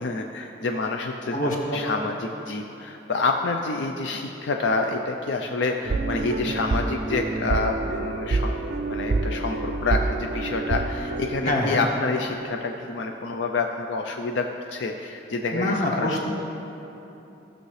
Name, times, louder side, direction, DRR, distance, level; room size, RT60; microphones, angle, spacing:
voice 1, 0.0-1.4 1.7-8.6 8.9-16.3, left 3 dB, 80° left, 3 dB, 0.5 m, -28 dB
voice 2, 1.3-1.8 11.4-11.8 15.5-16.3, left 1 dB, 45° left, -3 dB, 1.5 m, -25 dB
sound 1, 5.8-11.2, right 3 dB, 55° right, 0.4 m, -27 dB
15.5 x 6.5 x 3.2 m, 3.0 s
head